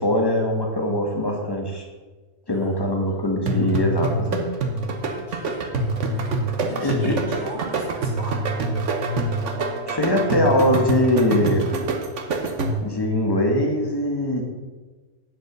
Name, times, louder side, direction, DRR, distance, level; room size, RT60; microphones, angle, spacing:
voice 1, 0.0-1.8 2.5-4.4 6.8-7.2 9.8-11.7 12.8-14.4, left 1 dB, 20° left, 1 dB, 1.6 m, -22 dB
voice 2, 2.5-3.6 5.0-8.8, right 1 dB, 55° left, -7 dB, 4.4 m, -41 dB
sound 1, 3.5-13.0, right 2 dB, 70° right, 1.4 m, -25 dB
9.6 x 6.9 x 6.1 m, 1.3 s
omnidirectional pair, 1.3 m